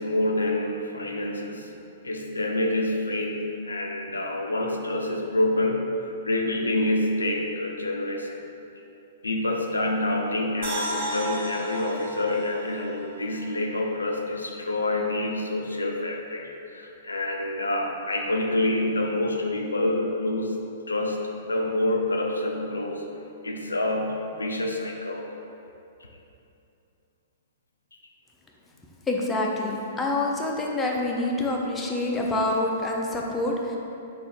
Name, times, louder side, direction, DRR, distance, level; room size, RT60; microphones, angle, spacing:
voice 1, 0.0-1.7 2.0-8.4 9.2-23.0 23.4-25.3, left 1 dB, 85° left, 1 dB, 0.4 m, -27 dB
sound 1, 10.6-13.8 14.2-14.3, right 1 dB, 55° right, 1.0 m, -34 dB
voice 2, 29.1-33.8, left 2 dB, 10° left, -2 dB, 0.5 m, -26 dB
3.6 x 2.4 x 4.3 m, 2.8 s
figure-of-eight pair, 110°, 0 cm